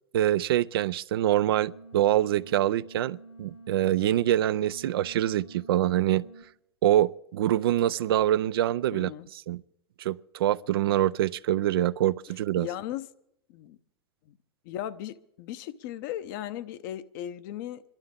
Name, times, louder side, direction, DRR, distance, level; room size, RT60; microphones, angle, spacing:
voice 1, 0.1-6.3 6.8-9.6 10.0-12.7, right 12 dB, 70° right, 0.4 m, -25 dB
sound 1, 1.2-6.4, right 3 dB, 85° left, 6.0 m, -49 dB
voice 2, 8.9-9.3 12.6-13.1 13.5-13.8 14.2-14.4 14.6-17.8, left 12 dB, 55° left, 0.8 m, -37 dB
26.5 x 11.5 x 3.7 m
hypercardioid pair, 100°, 13 cm